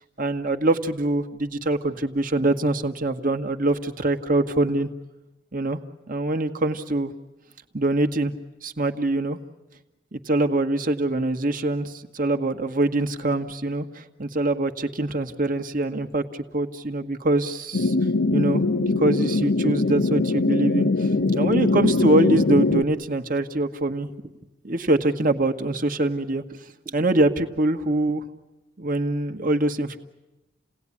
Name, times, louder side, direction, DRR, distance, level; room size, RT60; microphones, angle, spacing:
voice 1, 0.2-4.9 5.5-5.8 6.1-7.1 7.7-8.3 8.6-9.4 10.1-17.9 18.3-24.1 24.6-26.4 26.9-28.2 28.8-30.0, right 2 dB, 50° right, 7 dB, 1.6 m, -24 dB
sound 1, 17.7-22.8, left 3 dB, 80° left, 1.0 m, -22 dB
sound 2, 19.7-19.8 20.2-20.5 21.1-21.7 22.4-23.0 23.9-24.5 24.9-25.5 26.5-27.2 28.1-28.2, right 1 dB, 25° right, 1.3 m, -40 dB
29.5 x 18.5 x 10.0 m, 1.0 s
head